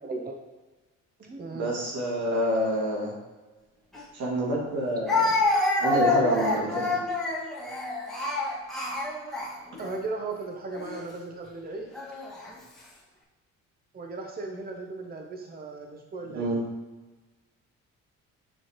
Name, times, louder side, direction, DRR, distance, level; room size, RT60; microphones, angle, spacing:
voice 1, 0.0-0.4 1.2-1.8 9.8-11.9 13.9-16.6, right 3 dB, 30° right, 3 dB, 0.8 m, -36 dB
voice 2, 1.5-3.1 4.1-5.3 5.8-7.0 16.3-16.6, right 1 dB, 80° right, -3 dB, 2.4 m, -27 dB
Speech, 3.9-4.0 5.1-10.0 10.7-11.0 11.9-12.5, left 2 dB, ahead, 1.8 m, -27 dB
7.4 x 6.3 x 3.1 m, 1.2 s
cardioid pair, 90°, 30 cm